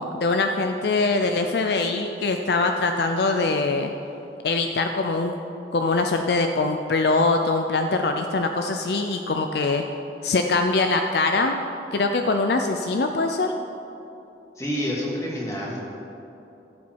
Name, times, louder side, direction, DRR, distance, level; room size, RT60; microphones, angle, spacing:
voice 1, 0.0-3.9 4.4-5.4 5.7-9.8 10.2-11.6 11.9-13.5, left 3 dB, 60° left, 5 dB, 0.5 m, -23 dB
voice 2, 14.6-15.8, equal, 15° left, -4 dB, 2.2 m, -28 dB
15.5 x 7.3 x 4.6 m, 2.9 s
head